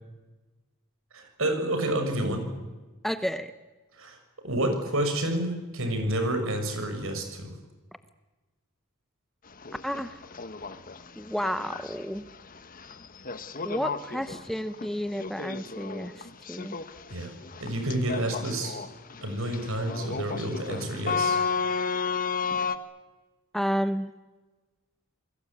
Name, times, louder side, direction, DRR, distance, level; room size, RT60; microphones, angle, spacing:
voice 1, 1.1-2.4 4.0-4.2 4.4-7.5 17.1-18.8 19.2-21.4, right 1 dB, 65° right, 6 dB, 6.3 m, -29 dB
voice 2, 3.0-3.5 9.8-10.2 11.2-12.2 13.6-16.1 16.5-16.8 23.5-24.1, equal, ahead, 11 dB, 0.8 m, -31 dB
sound 1, 9.5-22.8, left 5 dB, 40° left, 1.3 m, -33 dB
29.0 x 21.0 x 8.7 m, 1.2 s
head